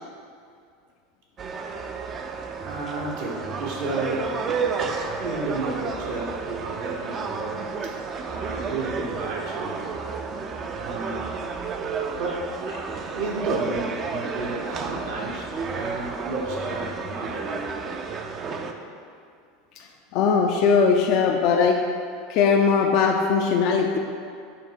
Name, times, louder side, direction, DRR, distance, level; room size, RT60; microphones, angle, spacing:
sound 1, 1.4-18.7, right 5 dB, 35° right, 0.4 m, -31 dB
voice 1, 2.6-4.4 4.8-7.6 8.3-9.9 10.8-11.4 12.2-17.8, right 2 dB, 65° right, -3 dB, 1.0 m, -32 dB
voice 2, 20.1-21.8 22.3-24.0, left 5 dB, 55° left, 2 dB, 0.4 m, -20 dB
5.7 x 3.4 x 4.9 m, 2.3 s
figure-of-eight pair, 80°, 0 cm